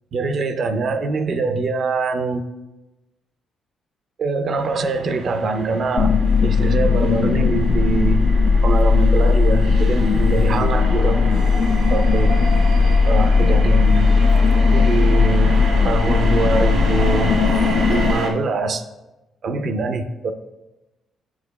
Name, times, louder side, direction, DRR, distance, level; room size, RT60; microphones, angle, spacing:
voice 1, 0.1-2.4 4.2-6.1 6.4-8.2 8.6-11.2 11.9-12.4 13.1-14.1 14.7-15.5 15.8-17.3 17.9-18.8 19.4-20.3, right 4 dB, 55° right, 9 dB, 0.6 m, -23 dB
sound 1, 4.6-18.3, right 2 dB, 80° right, 1.4 m, -30 dB
sound 2, 6.0-18.1, left 4 dB, 60° left, 0.3 m, -17 dB
8.7 x 6.4 x 2.2 m, 1.0 s
cardioid pair, 90°, 0 cm